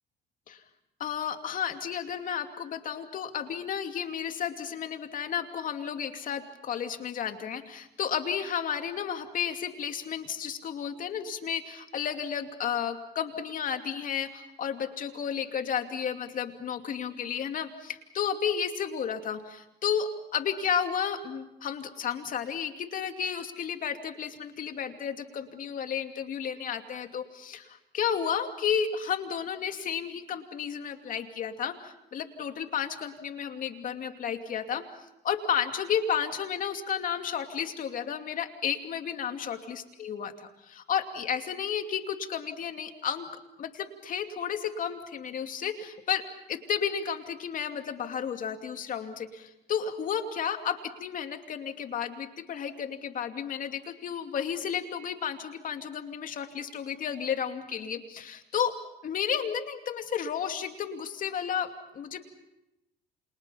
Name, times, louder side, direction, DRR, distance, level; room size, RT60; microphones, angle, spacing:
voice 1, 1.0-34.8 35.2-40.3 40.6-43.3 43.6-46.2 46.5-58.7 59.0-62.2, left 8 dB, 55° left, 6 dB, 2.6 m, -32 dB
29.5 x 27.5 x 5.7 m, 0.89 s
cardioid pair, 110°, 17 cm